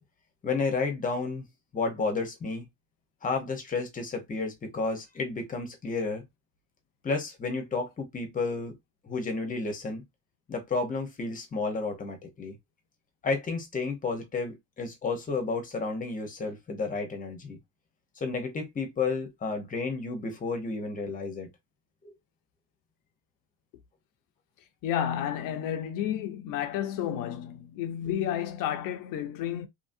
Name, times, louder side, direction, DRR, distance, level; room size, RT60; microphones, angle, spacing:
voice 1, 0.4-1.4 1.7-2.7 3.2-6.2 7.0-8.7 9.0-10.0 10.5-12.6 13.2-17.6 18.2-21.5 22.0-22.1, left 4 dB, 20° left, 0.8 m, -31 dB
voice 2, 24.8-29.7, left 10 dB, 55° left, 0.6 m, -31 dB
2.8 x 2.6 x 2.6 m
cardioid pair, 140°, 38 cm